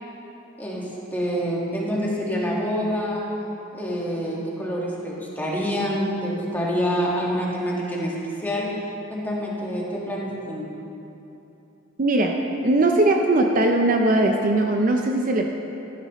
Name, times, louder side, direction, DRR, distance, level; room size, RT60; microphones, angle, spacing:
voice 1, 0.6-3.2 3.7-8.1 8.4-8.7 9.1-10.7, equal, 10° left, -4 dB, 1.6 m, -26 dB
voice 2, 12.0-15.5, right 2 dB, 40° right, 3 dB, 0.6 m, -20 dB
13.5 x 11.0 x 3.1 m, 2.9 s
head